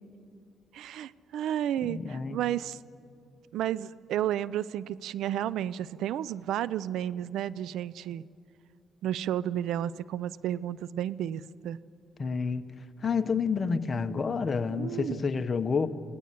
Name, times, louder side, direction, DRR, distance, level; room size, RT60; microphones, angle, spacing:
voice 1, 0.7-2.8 3.5-8.3 9.0-11.8 14.7-15.2, right 11 dB, 80° right, 19 dB, 0.5 m, -32 dB
voice 2, 1.8-2.4 12.2-12.6 13.0-15.9, left 5 dB, 40° left, 9 dB, 1.2 m, -29 dB
25.0 x 18.0 x 8.5 m, 2.5 s
cardioid pair, 90°, 0 cm